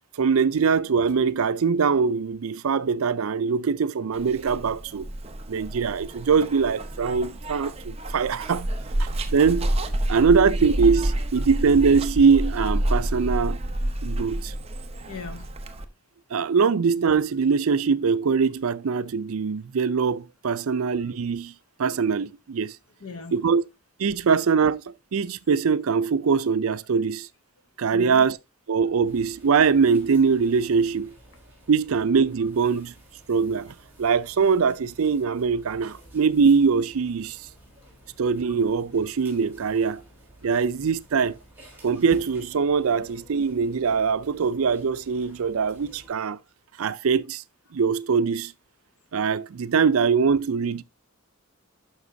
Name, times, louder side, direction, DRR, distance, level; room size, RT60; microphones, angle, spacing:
voice 1, 0.2-5.0 5.5-8.7 9.0-9.8 10.1-13.6 14.0-14.5 16.3-21.5 21.8-22.8 23.3-23.6 24.0-24.8 25.1-27.3 27.8-28.4 28.7-31.1 31.7-32.9 33.3-37.4 38.2-40.0 40.4-41.4 41.8-46.4 46.8-47.4 47.7-48.5 49.1-50.8, right 5 dB, 75° right, 0.5 m, -22 dB
Zipper (clothing), 4.1-15.9, right 1 dB, 30° right, 0.7 m, -29 dB
voice 2, 15.1-15.8 20.7-20.8 23.0-23.4 27.9-28.3 42.9-43.1, left 4 dB, 75° left, 1.0 m, -40 dB
sound 1, 29.0-46.1, right 1 dB, 10° right, 3.1 m, -51 dB
11.0 x 6.0 x 2.7 m
head